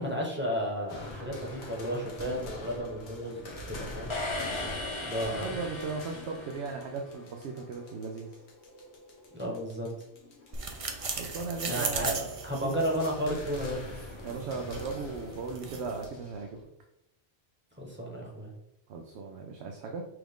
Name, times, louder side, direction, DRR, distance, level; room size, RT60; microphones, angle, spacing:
voice 1, 0.0-4.1 5.0-5.5 9.3-9.9 11.6-12.1 12.4-13.8 17.8-18.5, equal, 10° right, -2 dB, 0.9 m, -33 dB
sound 1, 0.9-16.6, left 2 dB, 85° left, 1.3 m, -45 dB
sound 2, 4.1-6.9, left 2 dB, 35° left, 0.6 m, -37 dB
voice 2, 5.2-8.3 11.1-12.8 14.2-16.6 18.9-20.0, right 4 dB, 90° right, 2 dB, 0.9 m, -37 dB
sound 3, 10.5-16.1, right 4 dB, 40° right, 0.6 m, -38 dB
6.1 x 2.4 x 3.5 m, 0.85 s
omnidirectional pair, 1.1 m